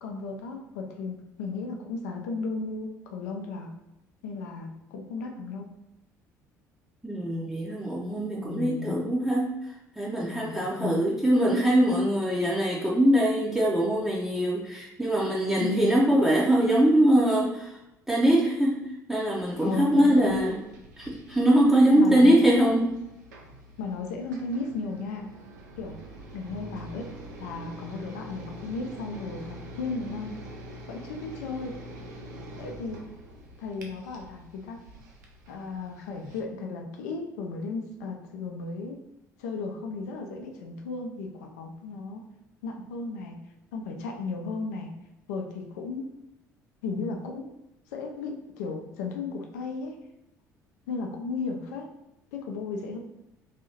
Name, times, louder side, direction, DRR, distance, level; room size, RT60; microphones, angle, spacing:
voice 1, 0.0-3.7 4.2-5.7 8.4-9.1 10.3-11.1 15.6-16.0 19.6-20.4 22.0-22.3 23.8-25.3 25.8-26.0 26.3-27.1 27.4-30.4 30.9-31.8 32.6-33.0 33.6-34.9 35.5-39.0 39.4-42.3 42.6-43.4 43.7-44.9 45.3-46.1 46.8-47.5 47.9-50.0 50.9-51.9 52.3-53.0, left 4 dB, 65° left, 2 dB, 0.5 m, -35 dB
voice 2, 7.0-9.6 10.0-17.7 18.1-18.8 19.1-20.6 21.0-22.9, right 1 dB, 5° right, -5 dB, 0.6 m, -22 dB
sound 1, 19.3-36.4, right 1 dB, 70° right, 0.5 m, -45 dB
3.2 x 2.7 x 2.8 m, 0.90 s
figure-of-eight pair, 55°, 9 cm